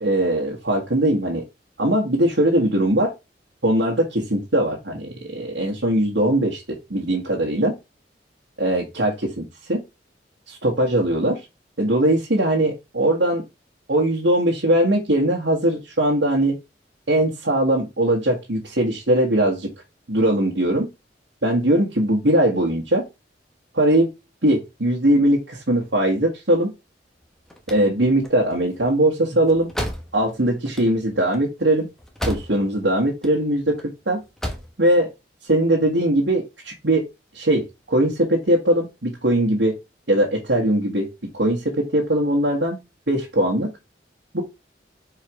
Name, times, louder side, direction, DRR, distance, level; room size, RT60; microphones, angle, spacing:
voice 1, 0.0-1.4 1.8-3.1 3.6-7.8 8.6-9.8 10.5-11.4 11.8-13.4 13.9-16.6 17.1-19.7 20.1-20.9 21.4-23.1 23.7-24.1 24.4-26.7 27.7-29.7 30.1-31.9 32.2-34.2 34.8-35.1 35.4-37.1 37.3-39.8 40.1-41.1 41.3-42.8 43.1-43.7 44.3-44.4, right 1 dB, 85° right, -1 dB, 1.7 m, -20 dB
sound 1, 27.2-32.8 33.1-33.8 34.2-34.8, equal, 5° left, 1.2 m, -33 dB
4.7 x 4.6 x 5.0 m, 0.24 s
head